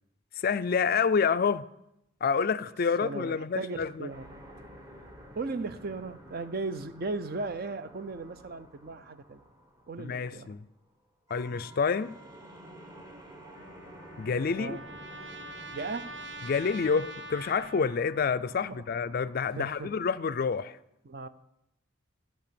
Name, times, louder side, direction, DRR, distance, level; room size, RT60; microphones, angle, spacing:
voice 1, 0.4-1.6 2.2-4.1 10.0-10.6 11.3-12.2 14.2-14.8 16.5-20.8, left 5 dB, 45° left, 0.4 m, -28 dB
voice 2, 3.0-4.4 5.0-5.1 5.3-9.4 9.9-10.5 14.5-14.8 15.7-16.1 18.6-18.8 19.6-19.9 21.0-21.3, right 3 dB, 50° right, 0.6 m, -37 dB
sound 1, 4.1-10.9 11.3-20.0, equal, 15° right, 1.2 m, -51 dB
Trumpet, 13.5-18.4, right 2 dB, 70° right, 0.9 m, -44 dB
13.5 x 5.6 x 6.9 m
head